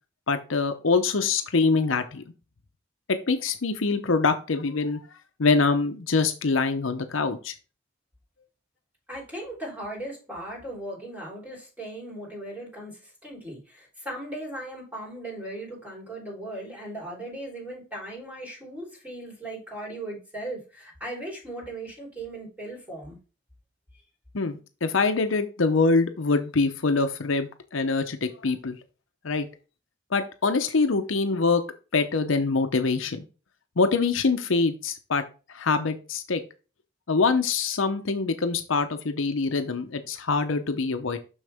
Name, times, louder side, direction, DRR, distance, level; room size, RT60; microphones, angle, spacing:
voice 1, 0.3-2.2 3.1-5.0 5.4-7.5 24.3-28.8 29.2-29.5 30.1-31.6 31.9-33.2 33.8-35.2 35.5-36.4 37.1-41.2, left 4 dB, 70° left, 8 dB, 0.7 m, -24 dB
voice 2, 9.1-23.2, right 1 dB, 10° right, -4 dB, 3.6 m, -38 dB
6.4 x 6.3 x 3.5 m, 0.33 s
head